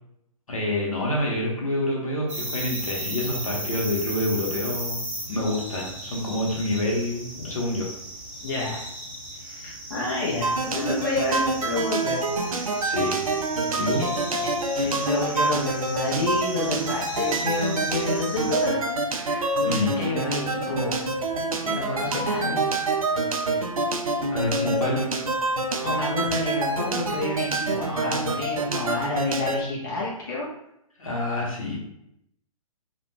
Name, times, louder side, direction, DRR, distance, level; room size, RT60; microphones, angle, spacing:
voice 1, 0.5-7.9 12.8-13.2 13.8-14.1 19.6-20.0 24.3-25.1 31.0-31.8, left 1 dB, 70° left, -3 dB, 0.9 m, -27 dB
sound 1, 2.3-18.7, right 1 dB, 20° right, 0.7 m, -36 dB
voice 2, 8.4-8.8 9.3-12.8 14.0-14.1 14.4-21.1 21.6-22.7 23.3-23.6 25.7-30.5, left 2 dB, 35° left, -5 dB, 0.6 m, -30 dB
sound 2, 10.4-29.6, right 2 dB, 75° right, 0.4 m, -26 dB
2.4 x 2.2 x 3.0 m, 0.79 s
figure-of-eight pair, 125°, 18 cm